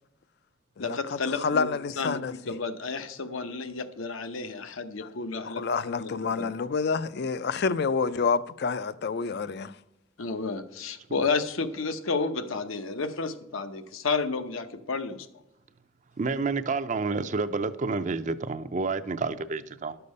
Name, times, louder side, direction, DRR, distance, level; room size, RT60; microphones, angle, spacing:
voice 1, 0.8-1.7 2.0-2.2 2.5-5.6 6.0-6.5 10.2-15.3, left 4 dB, 80° left, 0.8 m, -31 dB
voice 2, 1.3-2.3 5.0-5.1 5.4-9.8, left 5 dB, 50° left, 0.4 m, -28 dB
voice 3, 16.2-20.0, right 4 dB, 35° right, 0.4 m, -29 dB
12.0 x 6.8 x 5.3 m
head